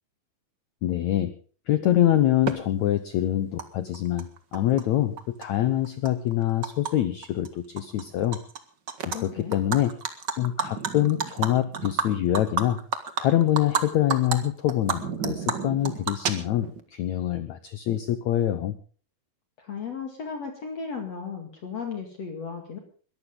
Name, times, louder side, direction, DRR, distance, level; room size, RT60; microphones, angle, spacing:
voice 1, 0.8-1.3 1.7-8.4 9.1-9.9 10.4-12.8 13.2-18.8, left 12 dB, 75° left, 12 dB, 1.7 m, -25 dB
Animal, 2.5-2.6 3.6-3.7 3.9-4.8 5.2-6.9 7.2-7.5 7.8-8.6 8.9-9.2 9.5-13.8 14.1-14.4 14.7-16.8, right 6 dB, 55° right, 1.2 m, -30 dB
voice 2, 9.1-9.6 19.6-22.8, left 6 dB, 45° left, 3 dB, 3.1 m, -35 dB
21.5 x 14.5 x 3.9 m, 0.41 s
omnidirectional pair, 4.4 m